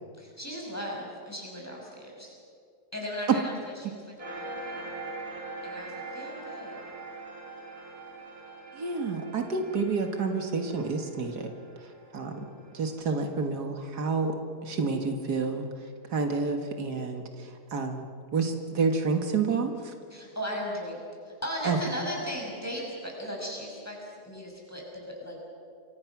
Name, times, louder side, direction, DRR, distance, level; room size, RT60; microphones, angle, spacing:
voice 1, 0.2-2.3 2.9-4.0 4.3-4.9 5.6-6.8 20.1-25.4, equal, 10° left, -2 dB, 6.4 m, -37 dB
sound 1, 4.2-13.2, right 3 dB, 75° right, 5.4 m, -42 dB
voice 2, 8.8-11.5 12.1-12.4 12.7-14.3 14.6-15.7 16.1-18.1 18.3-19.9 21.6-21.8, right 4 dB, 90° right, 5 dB, 2.3 m, -29 dB
28.5 x 23.5 x 6.1 m, 2.3 s
omnidirectional pair, 1.7 m